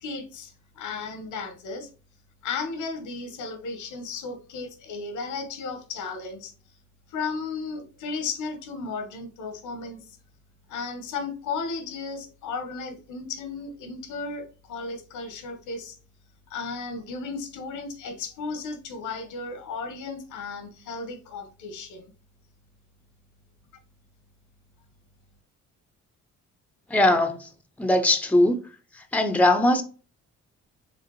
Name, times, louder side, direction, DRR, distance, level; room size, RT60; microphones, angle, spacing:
voice 1, 0.0-1.9 2.4-6.5 7.1-10.0 10.7-15.9 16.5-22.1, left 4 dB, 85° left, 1.1 m, -34 dB
voice 2, 26.9-27.5 27.8-28.6 28.9-29.8, left 1 dB, 5° left, 0.6 m, -20 dB
4.9 x 3.5 x 3.1 m
cardioid pair, 90°, 30 cm